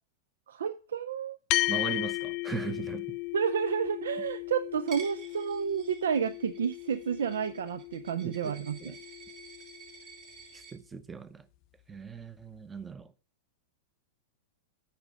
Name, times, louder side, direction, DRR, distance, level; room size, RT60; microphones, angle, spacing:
voice 1, 0.5-1.4 3.3-8.9, right 7 dB, 70° right, 0.4 m, -31 dB
sound 1, 1.5-10.2, left 20 dB, 45° left, 0.3 m, -36 dB
voice 2, 1.7-3.2 8.2-9.0 10.5-11.5 11.9-13.1, right 5 dB, 15° right, 0.7 m, -39 dB
Coin (dropping), 4.9-10.7, right 5 dB, 50° right, 3.2 m, -51 dB
8.8 x 5.2 x 5.2 m
figure-of-eight pair, 100°, 0 cm